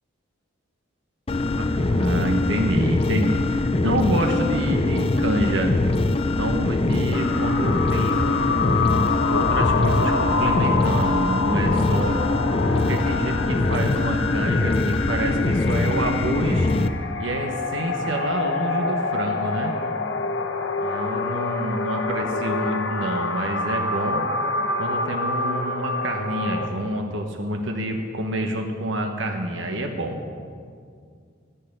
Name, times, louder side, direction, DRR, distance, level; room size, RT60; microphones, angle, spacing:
sound 1, 1.3-16.9, left 2 dB, 30° left, 0.4 m, -23 dB
voice 1, 1.5-5.7 6.3-8.7 9.3-12.2 12.8-16.7 17.2-19.7 20.8-24.2 24.8-30.2, right 1 dB, 70° right, 3 dB, 1.2 m, -27 dB
sound 2, 7.1-26.7, left 3 dB, 60° left, 0.9 m, -27 dB
15.0 x 5.7 x 9.9 m, 2.2 s
head